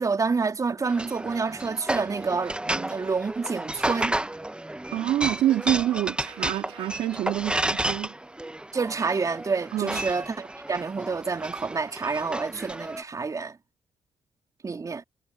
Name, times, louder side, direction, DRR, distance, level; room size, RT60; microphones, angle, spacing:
voice 1, 0.0-4.2 8.7-13.6 14.6-15.0, right 4 dB, 40° right, 3.1 m, -28 dB
sound 1, 0.8-13.0, right 1 dB, 10° right, 1.1 m, -32 dB
voice 2, 4.9-8.1 9.7-10.0, right 13 dB, 80° right, 2.5 m, -26 dB
supercardioid pair, 50°, 9 cm